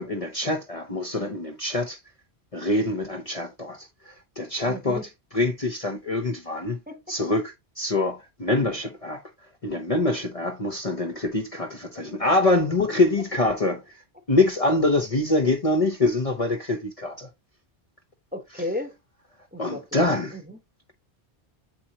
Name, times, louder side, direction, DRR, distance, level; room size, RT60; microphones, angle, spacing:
voice 1, 0.0-2.0 2.5-5.0 5.3-6.8 7.1-9.2 9.6-17.3 19.6-20.4, left 2 dB, 35° left, 0.7 m, -25 dB
voice 2, 4.6-5.1 6.9-7.1 18.3-19.0 19.5-20.6, left 1 dB, 10° right, 1.0 m, -35 dB
7.6 x 4.5 x 2.8 m
omnidirectional pair, 1.1 m